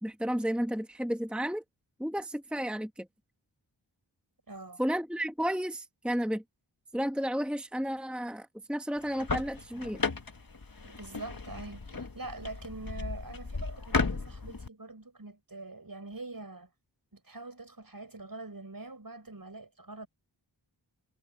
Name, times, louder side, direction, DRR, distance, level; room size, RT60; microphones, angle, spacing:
voice 1, 0.0-1.6 2.0-3.1 4.8-6.4 6.9-10.0, equal, ahead, 1.2 m, -32 dB
voice 2, 4.5-4.8 10.8-16.7 17.1-20.1, right 2 dB, 50° right, 6.3 m, -44 dB
sound 1, 9.0-14.7, left 4 dB, 50° left, 1.7 m, -35 dB
wide cardioid pair, 65°, 44 cm